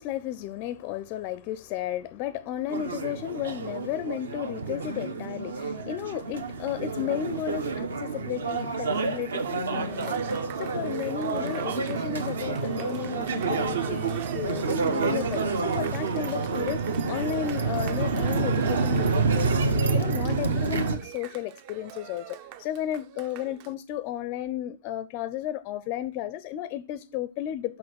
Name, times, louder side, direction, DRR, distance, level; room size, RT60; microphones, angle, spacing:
voice 1, 0.0-27.8, left 11 dB, 35° left, 0.4 m, -33 dB
sound 1, 2.7-21.0, right 4 dB, 60° right, 1.1 m, -28 dB
Cheering, 9.9-23.7, right 10 dB, 35° right, 0.5 m, -41 dB
6.2 x 5.8 x 6.4 m
figure-of-eight pair, 115°, 0 cm